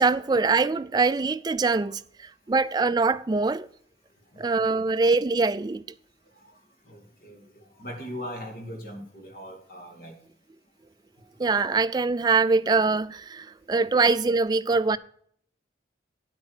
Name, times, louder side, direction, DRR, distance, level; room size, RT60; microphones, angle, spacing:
voice 1, 0.0-3.7 4.4-5.8 11.4-15.0, right 4 dB, 20° right, 0.3 m, -23 dB
voice 2, 4.3-4.8 6.4-6.5 6.9-10.1, equal, 50° left, 2.6 m, -40 dB
9.6 x 8.3 x 4.9 m
head